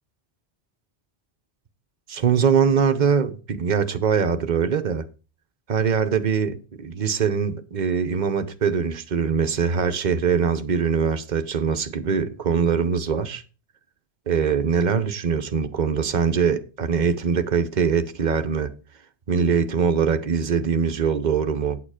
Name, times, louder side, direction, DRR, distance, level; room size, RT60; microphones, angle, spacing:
voice 1, 2.1-5.0 5.7-13.4 14.3-18.7 19.3-21.8, right 6 dB, 45° right, 1.0 m, -22 dB
9.0 x 7.9 x 4.9 m
omnidirectional pair, 1.1 m